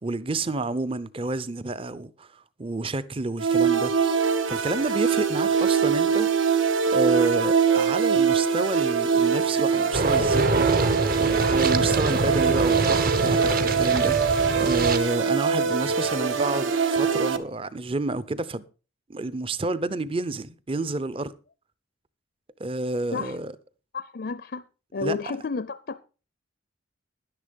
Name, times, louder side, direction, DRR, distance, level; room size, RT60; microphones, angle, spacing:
voice 1, 0.0-3.9 4.5-6.3 6.9-10.7 11.2-18.6 19.1-21.3 22.6-23.5 25.0-25.2, right 2 dB, 25° right, 0.6 m, -29 dB
sound 1, 3.4-17.4, right 6 dB, 75° right, 1.3 m, -23 dB
sound 2, 9.9-15.0, right 2 dB, 45° right, 1.0 m, -25 dB
voice 2, 23.9-24.7 24.9-26.0, left 4 dB, 50° left, 0.5 m, -31 dB
11.0 x 10.5 x 5.2 m
head